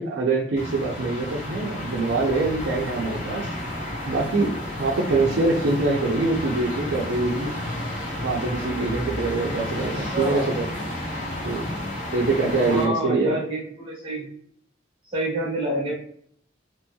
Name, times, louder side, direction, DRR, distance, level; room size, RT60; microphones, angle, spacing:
voice 1, 0.0-3.5 4.1-4.5 4.8-7.5 8.2-10.9 11.4-11.6 12.1-13.3, right 3 dB, 75° right, -3 dB, 0.5 m, -24 dB
sound 1, 0.6-12.8, left 1 dB, 40° left, 0.9 m, -31 dB
voice 2, 9.8-10.6 12.6-14.3 15.0-15.9, right 1 dB, 30° right, -5 dB, 1.4 m, -28 dB
3.0 x 2.9 x 2.2 m, 0.64 s
head